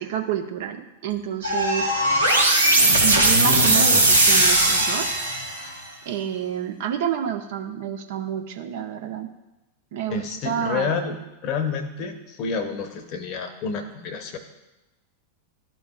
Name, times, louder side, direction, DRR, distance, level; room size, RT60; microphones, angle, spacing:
voice 1, 0.0-2.0 3.0-5.1 6.1-9.3 9.9-11.0, right 9 dB, 55° right, 6 dB, 0.7 m, -29 dB
sound 1, 1.4-5.7, right 2 dB, 85° right, 1.2 m, -18 dB
voice 2, 10.1-14.4, left 5 dB, 40° left, 8 dB, 0.8 m, -29 dB
12.5 x 4.6 x 2.3 m, 1.0 s
figure-of-eight pair, 90°, 0 cm